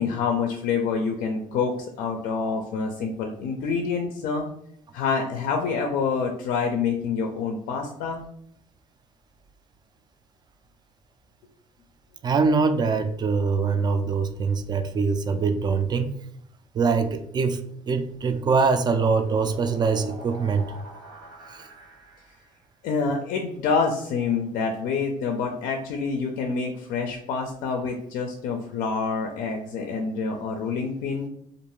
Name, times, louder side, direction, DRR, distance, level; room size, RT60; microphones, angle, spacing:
voice 1, 0.0-4.4 4.9-8.2 22.8-31.3, left 5 dB, 75° left, 2 dB, 0.4 m, -27 dB
voice 2, 12.2-16.1 16.7-17.6 17.9-20.7 21.5-21.7, right 5 dB, 30° right, 9 dB, 0.3 m, -23 dB
sound 1, 17.8-22.6, right 1 dB, 75° right, 1.4 m, -44 dB
2.5 x 2.2 x 2.9 m, 0.71 s
supercardioid pair, 80°, 14 cm